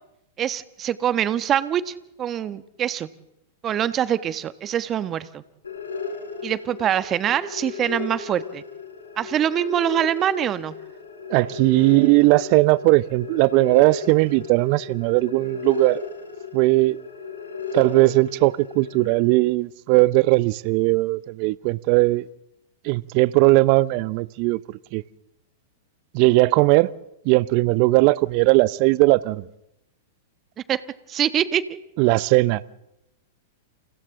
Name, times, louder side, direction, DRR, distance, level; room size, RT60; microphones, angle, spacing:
voice 1, 0.4-3.1 3.6-5.4 6.4-8.6 9.2-10.7 30.7-30.8 31.1-31.8, right 10 dB, 30° right, 1.3 m, -24 dB
sound 1, 5.6-19.2, left 5 dB, 85° left, 4.8 m, -35 dB
voice 2, 11.3-16.0 16.5-17.0 17.7-22.3 22.8-25.0 26.1-26.9 27.2-29.5 32.0-32.6, right 22 dB, 50° right, 0.7 m, -18 dB
30.0 x 28.5 x 3.8 m
hypercardioid pair, 100°, 0 cm